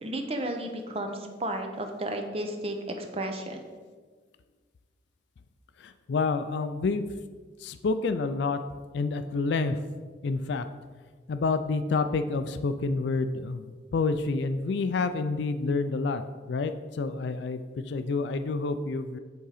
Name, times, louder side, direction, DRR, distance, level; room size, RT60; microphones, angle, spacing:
voice 1, 0.0-3.6, right 1 dB, 30° right, 4 dB, 0.7 m, -33 dB
voice 2, 5.8-7.1 7.6-8.6 8.9-9.8 10.2-10.6 11.3-13.6 13.9-16.2 16.5-19.2, left 4 dB, 65° left, 10 dB, 0.4 m, -28 dB
8.1 x 3.7 x 4.9 m, 1.5 s
head